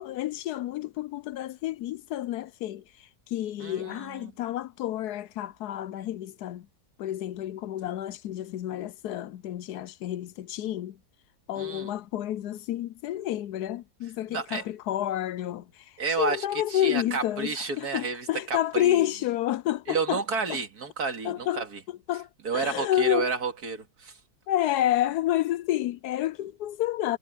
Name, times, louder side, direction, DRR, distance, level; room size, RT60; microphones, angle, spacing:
voice 1, 0.0-6.7 7.0-11.0 11.5-20.2 20.5-20.6 21.2-21.6 22.1-23.3 24.5-27.2, left 13 dB, 70° left, 1.0 m, -29 dB
voice 2, 3.6-4.3 11.6-11.9 14.3-14.6 16.0-19.0 19.9-21.8 22.4-24.2, right 5 dB, 60° right, 2.7 m, -31 dB
omnidirectional pair, 1.9 m